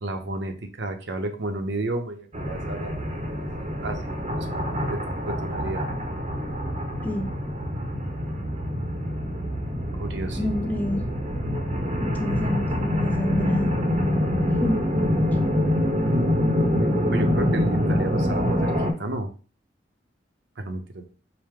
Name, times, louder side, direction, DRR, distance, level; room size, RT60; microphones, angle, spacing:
voice 1, 0.0-5.0 5.2-5.9 9.9-10.5 16.0-16.3 17.1-19.3 20.6-21.1, right 2 dB, 70° right, 6 dB, 0.7 m, -32 dB
sound 1, 2.3-18.9, equal, 35° right, 0.7 m, -25 dB
voice 2, 7.0-7.3 10.4-11.0 12.0-13.7 14.6-14.8, left 1 dB, 10° left, 4 dB, 0.5 m, -28 dB
4.7 x 2.1 x 3.5 m, 0.37 s
head